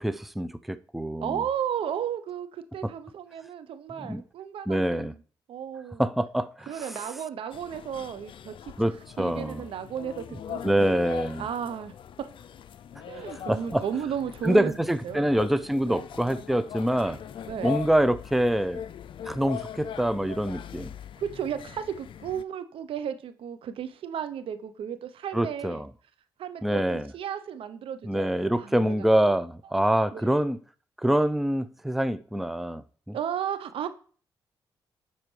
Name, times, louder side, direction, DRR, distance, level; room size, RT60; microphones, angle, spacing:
voice 1, 0.0-1.4 2.8-2.9 4.0-4.2 4.7-5.1 6.0-6.9 8.8-9.6 10.6-11.5 13.3-13.8 14.4-17.2 17.6-18.8 19.3-20.9 25.3-25.9 26.6-27.1 28.0-30.6 31.0-32.8 33.1-33.2, right 1 dB, ahead, 0.5 m, -25 dB
voice 2, 1.2-5.2 5.5-6.0 6.7-8.5 9.2-10.6 10.9-11.9 12.2-12.3 13.1-14.8 15.0-15.3 15.9-16.0 17.5-17.8 21.2-25.8 26.4-29.3 30.1-30.3 33.1-33.9, right 9 dB, 70° right, 0.7 m, -34 dB
sound 1, 7.5-22.4, left 10 dB, 60° left, 0.4 m, -41 dB
11.0 x 4.3 x 3.2 m
supercardioid pair, 50°, 10 cm